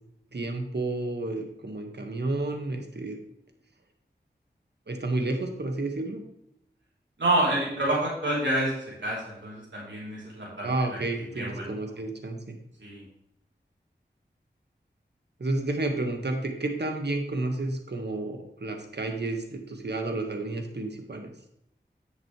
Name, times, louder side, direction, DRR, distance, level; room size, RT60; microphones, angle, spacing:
voice 1, 0.3-3.2 4.9-6.2 10.6-12.6 15.4-21.3, right 2 dB, 65° right, 4 dB, 1.8 m, -31 dB
voice 2, 7.2-11.7 12.8-13.0, right 1 dB, 90° right, -5 dB, 3.9 m, -28 dB
10.5 x 8.0 x 3.3 m, 0.79 s
cardioid pair, 40°, 19 cm